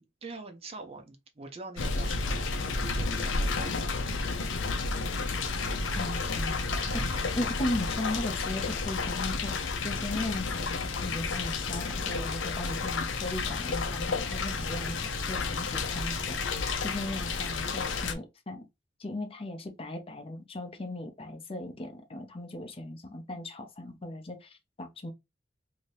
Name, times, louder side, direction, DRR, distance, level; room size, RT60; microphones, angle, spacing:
voice 1, 0.2-4.1 6.7-7.4 7.9-8.0, right 3 dB, 35° right, 0.6 m, -44 dB
sound 1, 1.8-18.1, left 4 dB, 85° left, 0.6 m, -31 dB
voice 2, 5.9-18.7 19.0-25.1, left 1 dB, 30° left, 0.6 m, -37 dB
2.8 x 2.7 x 3.1 m
head